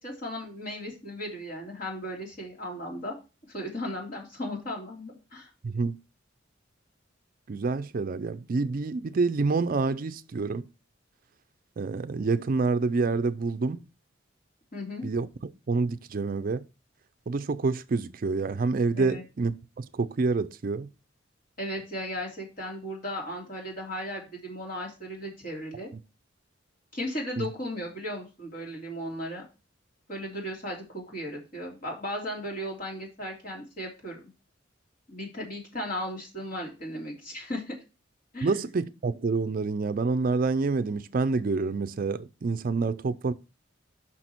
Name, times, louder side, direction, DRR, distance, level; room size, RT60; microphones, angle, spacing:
voice 1, 0.0-3.2 3.5-5.5 14.7-15.1 19.0-19.2 21.6-25.9 26.9-29.4 30.1-34.2 35.1-37.8 38.3-38.5, equal, 45° left, 2.9 m, -36 dB
voice 2, 5.6-6.0 7.5-10.6 11.8-13.8 15.0-15.3 15.7-16.6 17.3-20.9 27.4-27.5 38.4-43.3, right 4 dB, 45° right, 0.4 m, -27 dB
6.3 x 5.8 x 4.4 m
head